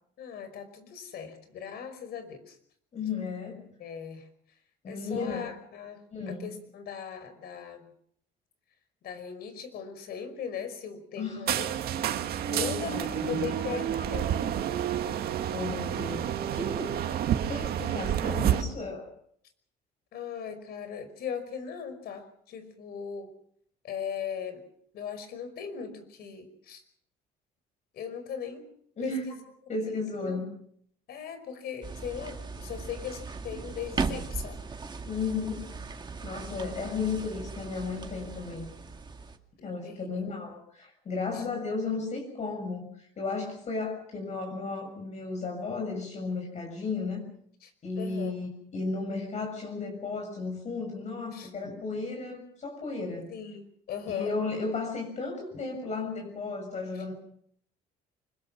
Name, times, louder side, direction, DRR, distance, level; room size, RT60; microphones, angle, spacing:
voice 1, 0.2-2.6 3.8-4.3 4.9-7.9 9.0-11.7 12.5-14.3 20.1-23.3 23.8-24.6 24.9-26.8 27.9-28.6 29.0-29.4 29.9-30.4 31.1-34.6 39.6-40.1 41.3-41.4 47.6-48.5 51.3-51.5 53.3-54.4 56.9-57.0, left 7 dB, 70° left, 11 dB, 5.4 m, -39 dB
voice 2, 2.9-3.6 4.8-5.5 6.1-6.5 11.2-11.5 12.4-13.5 13.9-14.0 15.5-17.0 17.5-19.1 29.0-29.2 29.7-30.5 35.1-35.7 36.2-38.7 39.6-47.3 47.8-53.3 54.1-57.1, left 4 dB, 45° left, 2 dB, 7.1 m, -34 dB
sound 1, 11.5-18.6, right 10 dB, 65° right, 2.1 m, -29 dB
sound 2, 31.8-39.4, right 4 dB, 25° right, 2.3 m, -38 dB
25.0 x 22.0 x 6.1 m, 0.66 s
cardioid pair, 110°, 17 cm